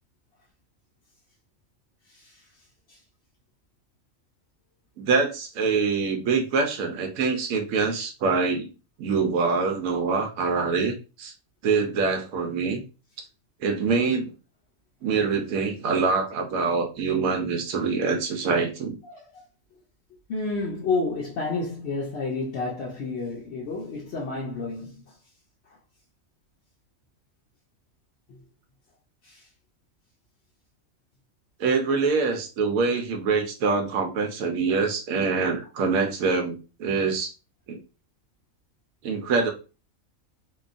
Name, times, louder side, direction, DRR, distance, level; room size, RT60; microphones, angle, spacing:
voice 1, 2.1-2.5 2.9-3.0 19.0-19.5 20.3-25.2 25.7-25.8 28.3-28.4 29.2-29.5, left 3 dB, 60° left, 0.8 m, -31 dB
voice 2, 5.0-8.7 9.0-11.3 11.6-12.8 13.6-14.3 15.0-19.0 31.6-37.3 37.7-37.8 39.0-39.5, right 4 dB, 85° right, 1.0 m, -25 dB
2.9 x 2.2 x 2.4 m
omnidirectional pair, 1.4 m